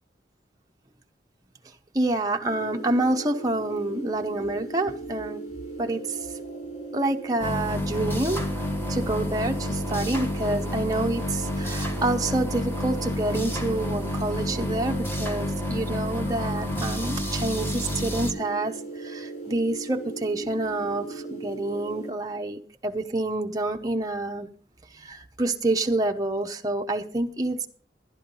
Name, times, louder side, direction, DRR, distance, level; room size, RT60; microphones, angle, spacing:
voice 1, 1.9-5.4 5.8-6.2 6.9-8.6 8.9-24.5 24.9-27.7, right 2 dB, 20° right, 2 dB, 0.8 m, -28 dB
sound 1, 2.4-22.1, right 3 dB, 40° left, 2.8 m, -38 dB
sound 2, 7.4-18.3, left 1 dB, 15° left, 1.3 m, -29 dB
12.0 x 10.5 x 5.3 m, 0.42 s
head